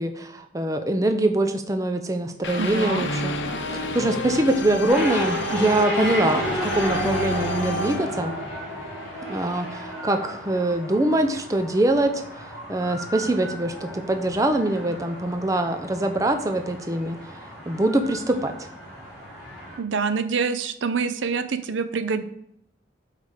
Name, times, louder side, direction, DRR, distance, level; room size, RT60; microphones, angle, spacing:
voice 1, 0.0-3.3 3.7-8.3 9.3-17.2 17.7-18.5, right 1 dB, 20° right, 7 dB, 0.5 m, -24 dB
sound 1, 2.4-9.4, left 2 dB, 80° left, 0.7 m, -31 dB
voice 2, 2.6-3.0 19.8-22.2, right 5 dB, 90° right, 11 dB, 0.6 m, -26 dB
sound 2, 4.9-19.8, equal, 5° left, 2.9 m, -33 dB
8.2 x 3.3 x 4.9 m, 0.72 s
head